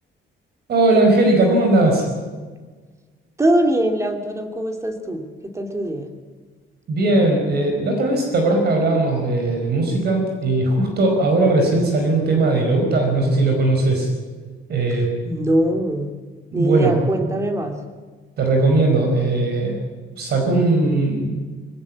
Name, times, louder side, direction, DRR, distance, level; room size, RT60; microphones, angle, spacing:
voice 1, 0.7-2.0 6.9-14.1 14.7-15.1 16.5-17.0 18.4-19.8 20.2-21.4, right 2 dB, 50° right, 2 dB, 5.0 m, -18 dB
voice 2, 3.4-5.3 5.5-6.1 15.2-16.1 16.5-17.8, right 1 dB, 15° right, 4 dB, 2.6 m, -21 dB
22.5 x 17.5 x 8.6 m, 1.4 s
cardioid pair, 175°, 21 cm